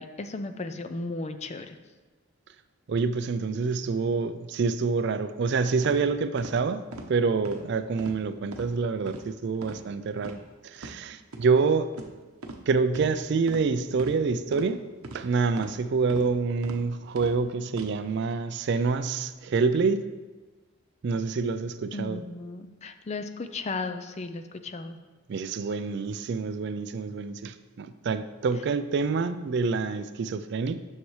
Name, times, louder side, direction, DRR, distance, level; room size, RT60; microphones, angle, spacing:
voice 1, 0.0-1.8 21.9-25.0, left 3 dB, 30° left, 0.4 m, -35 dB
voice 2, 2.9-6.8 7.1-11.9 12.7-14.8 15.1-20.1 21.0-22.2 25.3-30.8, right 4 dB, 50° right, 0.3 m, -27 dB
sound 1, 5.8-6.0 6.4-6.5 6.9-7.1 7.4-7.6 8.0-8.2 8.5-8.7 9.1-9.2 9.6-9.8 10.2-10.4 10.8-10.9 11.3-11.5 11.9-12.1 12.4-12.6 12.9-13.1 13.5-13.6 14.0-14.2 14.5-14.7 15.0-15.2 15.6-15.8 16.1-16.3 16.6-16.8 17.2-17.3 17.7-17.9, right 2 dB, 85° right, 0.8 m, -40 dB
9.9 x 6.6 x 3.2 m
head